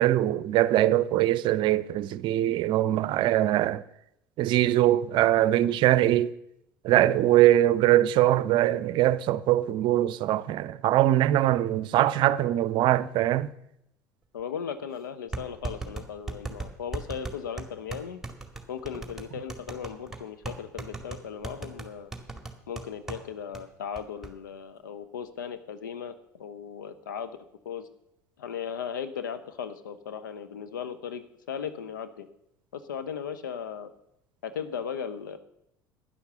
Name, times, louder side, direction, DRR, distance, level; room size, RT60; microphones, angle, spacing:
voice 1, 0.0-3.8 4.4-6.3 6.8-13.5, right 14 dB, 50° right, 0.6 m, -22 dB
voice 2, 14.3-18.2 18.7-22.1 22.7-27.3 27.6-27.9 28.4-32.3 32.7-33.9 34.4-35.4, left 7 dB, 80° left, 0.9 m, -37 dB
sound 1, 14.4-14.5 15.3-23.2 23.5-23.6 24.0-24.3, right 3 dB, 5° right, 2.1 m, -37 dB
11.5 x 10.0 x 6.8 m
figure-of-eight pair, 65°, 10 cm